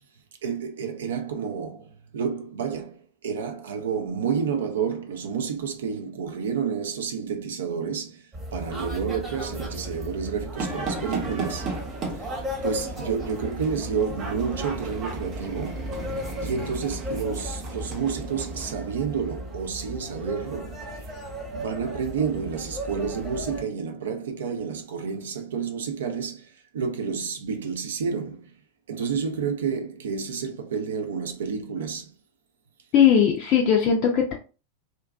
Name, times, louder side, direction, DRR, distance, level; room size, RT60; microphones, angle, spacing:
voice 1, 0.4-8.2 8.5-11.8 12.6-15.9 16.4-20.8 21.5-28.5 28.9-32.1, right 6 dB, 65° right, 0.4 m, -30 dB
sound 1, 8.3-23.6, equal, 15° right, 1.0 m, -35 dB
sound 2, 10.6-18.7, right 3 dB, 35° right, 0.8 m, -36 dB
voice 2, 32.9-34.3, left 8 dB, 40° left, 0.4 m, -19 dB
2.5 x 2.2 x 2.2 m
figure-of-eight pair, 90°, 0 cm